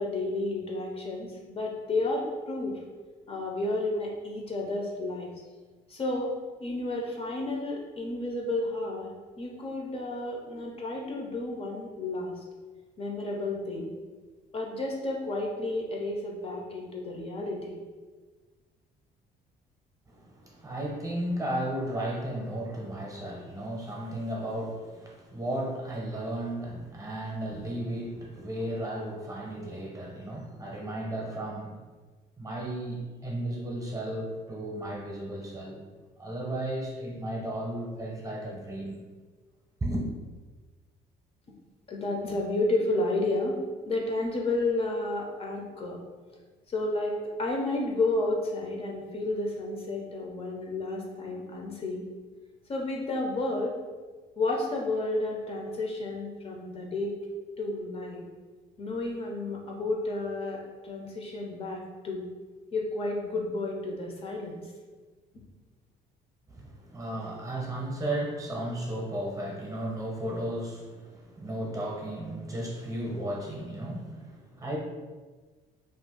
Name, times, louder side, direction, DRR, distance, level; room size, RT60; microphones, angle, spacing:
voice 1, 0.0-2.7 3.3-5.3 5.9-6.3 6.6-9.1 9.4-12.4 13.0-13.9 14.5-17.8 41.9-43.6 43.9-46.0 46.7-52.0 52.7-53.8 54.4-57.2 57.6-58.2 58.8-62.3 62.7-64.7, left 2 dB, 35° left, -1 dB, 0.5 m, -31 dB
voice 2, 20.1-31.8 32.4-35.8 36.2-39.0 39.8-40.1 66.5-74.8, right 1 dB, 20° right, -2 dB, 0.8 m, -34 dB
2.5 x 2.3 x 3.7 m, 1.4 s
cardioid pair, 110°, 17 cm